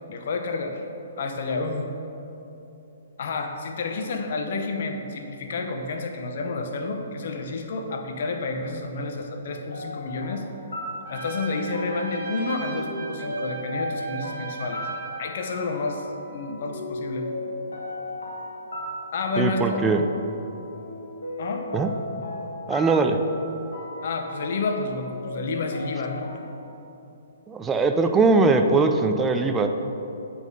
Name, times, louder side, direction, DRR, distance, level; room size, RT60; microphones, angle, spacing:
voice 1, 0.1-0.8 1.2-1.9 3.2-10.4 11.1-14.9 15.2-17.3 19.1-19.8 21.4-21.7 24.0-26.3, left 3 dB, 55° left, 4 dB, 0.8 m, -30 dB
sound 1, 9.5-26.5, left 1 dB, 80° left, 1.3 m, -37 dB
Trumpet, 11.0-15.3, right 3 dB, 60° right, 1.6 m, -38 dB
voice 2, 19.4-20.0 21.7-21.9 22.7-23.2 27.5-29.7, right 3 dB, 15° right, 5 dB, 0.4 m, -20 dB
8.1 x 4.2 x 5.3 m, 3.0 s
hypercardioid pair, 130°, 0 cm